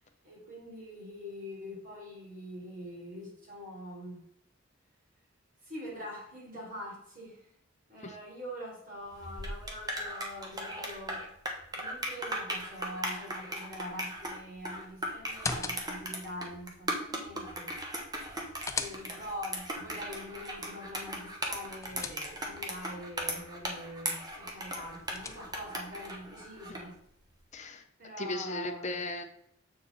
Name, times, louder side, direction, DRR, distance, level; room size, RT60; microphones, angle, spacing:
voice 1, 0.2-4.2 5.6-7.5 7.9-11.2 11.7-17.7 18.7-26.9 28.0-28.9, left 1 dB, 45° right, -4 dB, 3.1 m, -44 dB
sound 1, 9.1-26.9, right 1 dB, 20° right, 1.1 m, -38 dB
sound 2, 15.3-16.2 18.2-19.4 21.4-22.7 24.7-25.8, left 4 dB, 15° left, 0.4 m, -40 dB
voice 2, 27.5-27.8 28.2-29.2, left 1 dB, 35° left, 6 dB, 0.7 m, -36 dB
7.4 x 4.6 x 4.0 m, 0.70 s
head